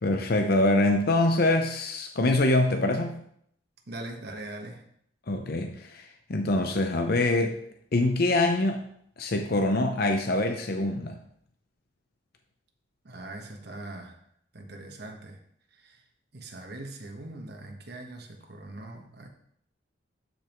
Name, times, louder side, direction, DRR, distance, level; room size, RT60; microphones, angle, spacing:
voice 1, 0.0-3.2 5.3-7.6 7.9-8.8 9.2-11.2, left 2 dB, 55° left, 4 dB, 0.7 m, -24 dB
voice 2, 3.9-4.9 13.0-14.2 14.5-15.4 15.7-16.0 16.3-19.3, right 2 dB, 60° right, 3 dB, 1.2 m, -41 dB
12.5 x 5.3 x 3.1 m, 0.69 s
head